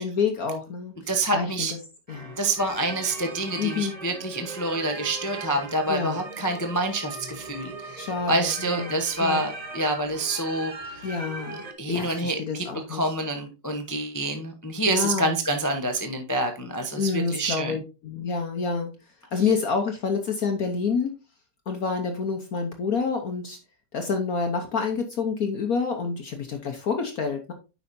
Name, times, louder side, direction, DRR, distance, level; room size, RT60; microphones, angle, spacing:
voice 1, 0.0-0.9 1.3-1.8 2.1-2.3 3.6-3.9 5.9-6.2 8.0-9.4 11.0-11.6 11.9-13.0 14.9-15.4 17.0-18.9 19.3-21.1 21.7-23.6 23.9-27.5, left 5 dB, 55° left, 5 dB, 1.2 m, -28 dB
voice 2, 1.1-1.7 2.4-11.1 11.8-17.8 19.4-19.5, right 2 dB, 25° left, 4 dB, 0.3 m, -27 dB
sound 1, 2.1-11.7, right 3 dB, 30° right, 0.7 m, -39 dB
9.6 x 5.7 x 2.6 m, 0.30 s
omnidirectional pair, 2.1 m